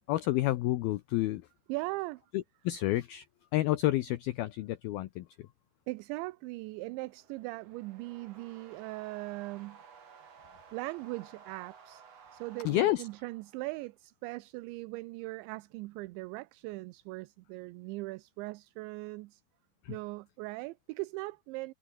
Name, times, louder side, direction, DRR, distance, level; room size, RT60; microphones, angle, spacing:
voice 1, 0.1-1.4 2.3-3.3 3.5-5.3 12.6-13.0 19.8-20.0, left 15 dB, 85° left, 2.2 m, -29 dB
voice 2, 1.7-2.2 5.9-9.8 10.7-12.0 12.3-19.4 19.9-21.7, right 22 dB, 80° right, 2.9 m, -39 dB
sound 1, 6.8-13.9, right 6 dB, 40° right, 3.1 m, -56 dB
omnidirectional pair, 5.5 m